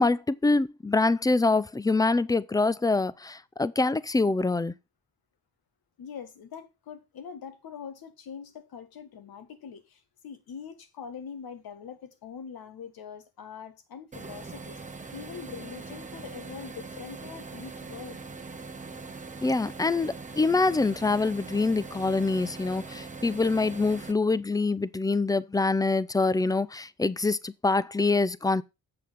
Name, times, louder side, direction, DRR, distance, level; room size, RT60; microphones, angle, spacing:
voice 1, 0.0-4.7 19.4-28.6, left 3 dB, 10° left, 0.5 m, -25 dB
voice 2, 6.0-18.2 20.0-20.1, left 7 dB, 70° left, 1.7 m, -43 dB
sound 1, 14.1-24.1, right 4 dB, 20° right, 1.0 m, -42 dB
7.8 x 6.4 x 5.0 m
cardioid pair, 90°, 37 cm